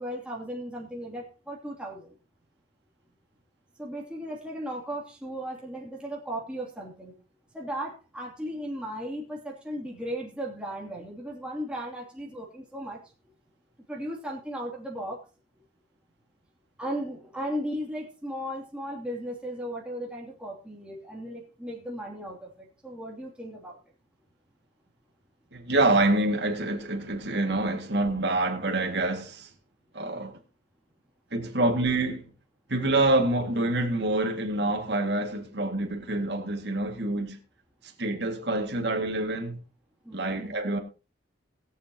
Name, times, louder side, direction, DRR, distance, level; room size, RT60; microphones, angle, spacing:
voice 1, 0.0-2.1 3.8-7.1 7.5-13.0 13.9-15.2 16.8-22.5 22.8-23.8 40.0-40.4, equal, 5° right, 2.9 m, -36 dB
voice 2, 25.5-29.5 29.9-30.4 31.3-32.3 32.7-37.4 38.0-39.6 40.1-40.8, right 2 dB, 70° right, 2.2 m, -26 dB
21.0 x 7.3 x 2.9 m
head